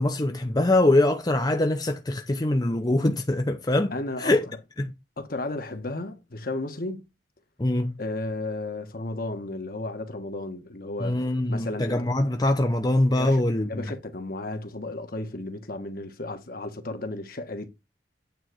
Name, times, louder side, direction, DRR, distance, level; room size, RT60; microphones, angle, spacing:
voice 1, 0.0-3.9 4.2-4.5 4.8-4.9 7.6-8.0 11.0-13.8, left 1 dB, 20° left, 0.7 m, -23 dB
voice 2, 3.9-4.6 5.2-7.0 8.0-11.2 11.5-12.0 13.2-13.4 13.7-17.7, left 2 dB, 55° left, 1.4 m, -33 dB
9.0 x 3.9 x 6.2 m
head